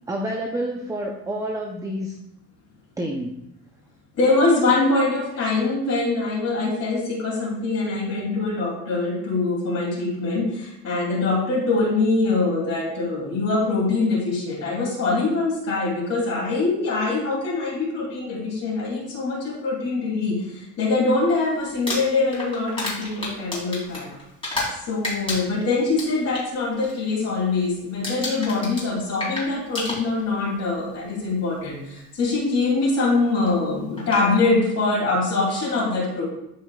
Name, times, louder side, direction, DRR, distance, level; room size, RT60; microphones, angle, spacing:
voice 1, 0.1-2.1 3.0-3.4, right 1 dB, 10° right, 2 dB, 0.4 m, -28 dB
voice 2, 4.2-24.1 24.8-36.2, left 3 dB, 45° left, -4 dB, 2.7 m, -23 dB
Crumpling crinkling, 21.7-24.8 25.0-26.4 26.8-27.1 27.4-27.7 28.0-30.4 31.4-31.5 33.5-33.6 34.0-34.3, left 2 dB, 15° left, 2.6 m, -31 dB
12.0 x 4.6 x 2.3 m, 0.84 s
cardioid pair, 140°, 38 cm